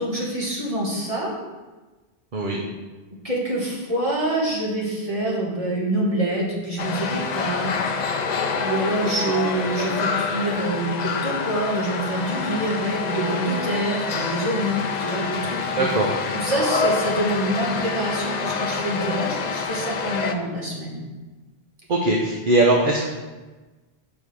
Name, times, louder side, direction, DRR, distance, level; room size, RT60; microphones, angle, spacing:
voice 1, 0.0-1.3 3.2-7.8 8.6-15.9 16.3-21.0, right 1 dB, 30° right, -4 dB, 1.6 m, -26 dB
voice 2, 2.3-2.6 15.8-16.1 21.9-23.1, right 2 dB, 50° right, -1 dB, 1.0 m, -20 dB
sound 1, 6.8-20.3, left 4 dB, 55° left, 0.5 m, -27 dB
5.1 x 4.7 x 6.2 m, 1.2 s
omnidirectional pair, 1.1 m